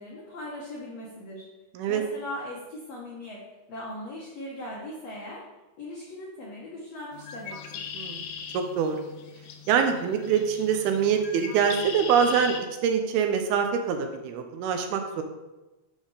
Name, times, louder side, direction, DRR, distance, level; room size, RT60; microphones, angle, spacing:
voice 1, 0.0-1.4 1.9-5.4 5.8-7.9, left 1 dB, 75° left, -5 dB, 1.5 m, -39 dB
Bird, 7.1-12.6, left 6 dB, 90° left, 1.8 m, -39 dB
voice 2, 7.9-8.3 8.5-9.0 9.7-12.6 12.8-15.2, right 7 dB, 80° right, 5 dB, 2.5 m, -24 dB
7.2 x 3.5 x 6.3 m, 1.1 s
omnidirectional pair, 4.6 m